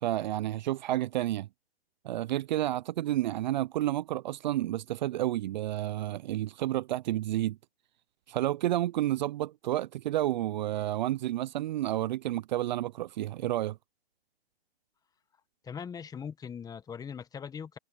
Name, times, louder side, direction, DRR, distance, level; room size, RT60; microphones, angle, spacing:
voice 1, 0.0-1.5 2.0-7.6 8.3-13.8, right 14 dB, 45° right, 0.7 m, -30 dB
voice 2, 15.6-17.8, left 7 dB, 10° left, 1.4 m, -40 dB
hypercardioid pair, 130°, 31 cm